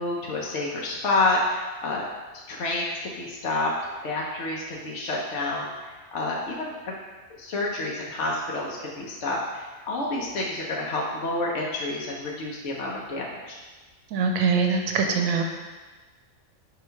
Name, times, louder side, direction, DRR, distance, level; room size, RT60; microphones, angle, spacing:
voice 1, 0.0-2.0 2.5-3.7 4.0-6.9 7.4-13.6, left 2 dB, 60° left, -3 dB, 1.0 m, -29 dB
voice 2, 14.1-15.4, right 5 dB, 90° right, 2 dB, 1.1 m, -23 dB
5.0 x 3.7 x 5.6 m, 1.3 s
omnidirectional pair, 1.4 m